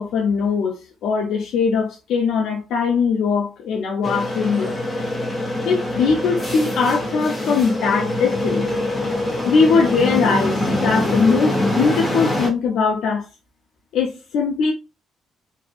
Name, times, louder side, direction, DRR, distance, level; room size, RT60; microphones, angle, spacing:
voice 1, 0.0-4.8 5.6-8.7 9.5-13.3 13.9-14.7, left 5 dB, 80° left, 0.5 m, -20 dB
sound 1, 4.0-12.5, left 1 dB, 20° left, 1.0 m, -24 dB
2.7 x 2.4 x 2.4 m
cardioid pair, 90°, 0 cm